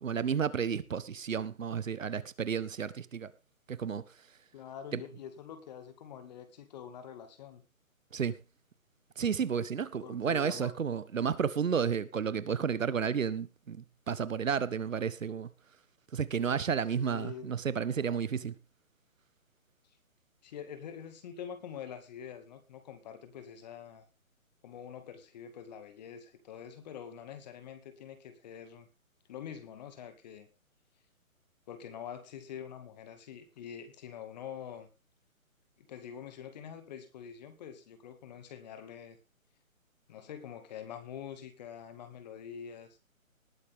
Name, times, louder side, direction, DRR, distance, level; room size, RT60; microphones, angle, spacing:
voice 1, 0.0-3.3 3.7-4.0 4.9-5.0 8.1-8.3 9.2-15.5 16.1-18.5, right 7 dB, 65° right, 1.4 m, -32 dB
voice 2, 4.5-7.6 10.0-10.7 17.1-17.5 20.4-24.0 24.6-28.9 29.3-30.5 31.7-34.9 35.8-39.2 40.1-43.0, left 8 dB, 30° left, 2.1 m, -45 dB
19.0 x 8.5 x 3.7 m
hypercardioid pair, 155°, 42 cm